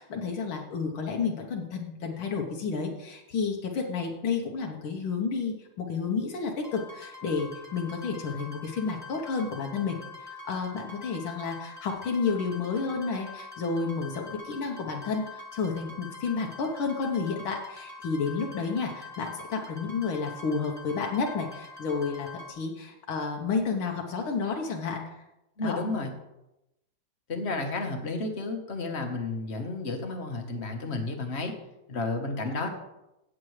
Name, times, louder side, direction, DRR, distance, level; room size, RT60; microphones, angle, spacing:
voice 1, 0.0-25.0 25.6-25.8 32.4-32.6, left 5 dB, 80° left, 1 dB, 1.9 m, -31 dB
sound 1, 6.6-22.5, left 3 dB, 20° right, 1.2 m, -45 dB
voice 2, 25.6-26.1 27.3-31.5 31.9-32.7, left 3 dB, 35° left, 4 dB, 1.2 m, -32 dB
16.0 x 7.5 x 3.2 m, 0.91 s
omnidirectional pair, 2.2 m